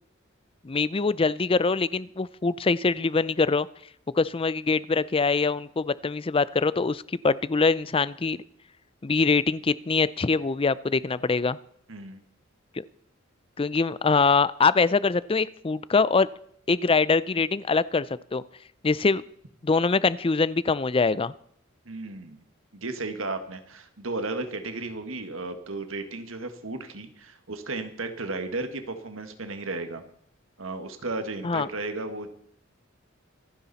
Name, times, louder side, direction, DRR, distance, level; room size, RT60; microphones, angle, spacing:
voice 1, 0.6-3.7 4.1-8.4 9.0-11.6 13.6-16.3 16.7-18.1 18.3-18.4 18.8-19.2 19.6-21.3 31.4-31.7, left 4 dB, 25° left, 18 dB, 0.5 m, -23 dB
voice 2, 11.9-12.2 21.9-22.4 22.7-30.0 30.6-32.3, right 2 dB, 70° right, 7 dB, 1.8 m, -34 dB
26.0 x 9.9 x 4.2 m, 0.67 s
head